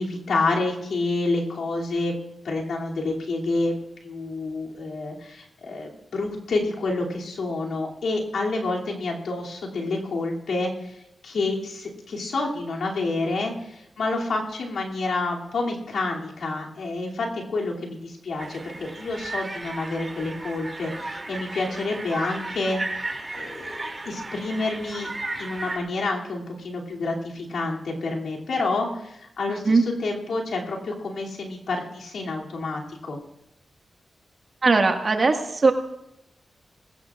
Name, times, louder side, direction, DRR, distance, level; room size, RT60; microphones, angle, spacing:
voice 1, 0.0-2.1 2.4-3.7 4.0-11.0 11.2-25.1 25.4-33.2, left 3 dB, 80° left, -3 dB, 2.7 m, -28 dB
sound 1, 18.4-25.8, right 2 dB, 30° right, 2.6 m, -35 dB
voice 2, 29.5-29.8 34.6-35.7, right 3 dB, 50° right, 4 dB, 1.7 m, -20 dB
20.5 x 17.0 x 2.5 m, 0.83 s
cardioid pair, 60°, 0 cm